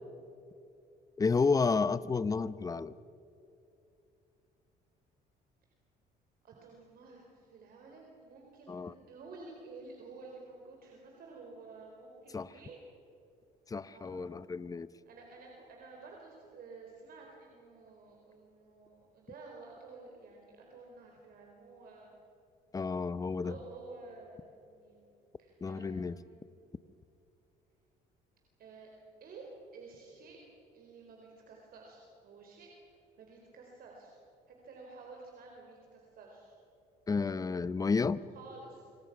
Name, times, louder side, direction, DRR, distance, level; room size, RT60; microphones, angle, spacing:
voice 1, 1.2-2.9 8.7-8.9 12.3-12.5 13.7-14.9 22.7-23.5 25.6-26.2 37.1-38.2, left 4 dB, 20° left, 16 dB, 0.7 m, -31 dB
voice 2, 6.4-12.8 13.9-14.3 15.1-22.1 23.4-25.0 25.4-26.4 28.6-28.9 29.2-30.4 30.7-32.7 33.2-34.1 34.5-36.5 38.3-38.8, right 3 dB, 60° right, 0 dB, 4.3 m, -51 dB
27.0 x 24.5 x 6.1 m, 2.7 s
cardioid pair, 110°, 17 cm